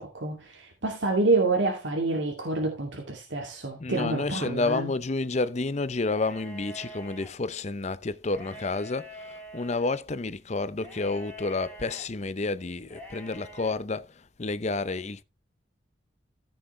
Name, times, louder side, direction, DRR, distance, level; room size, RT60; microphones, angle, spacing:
voice 1, 0.0-4.9, right 3 dB, 75° right, 2.5 m, -27 dB
voice 2, 3.8-9.1 9.5-14.1 14.4-15.2, left 3 dB, 35° left, 0.6 m, -30 dB
sound 1, 6.0-7.3 8.2-9.9 10.8-12.0 12.9-13.8, equal, 5° left, 4.0 m, -45 dB
15.0 x 6.3 x 3.2 m
head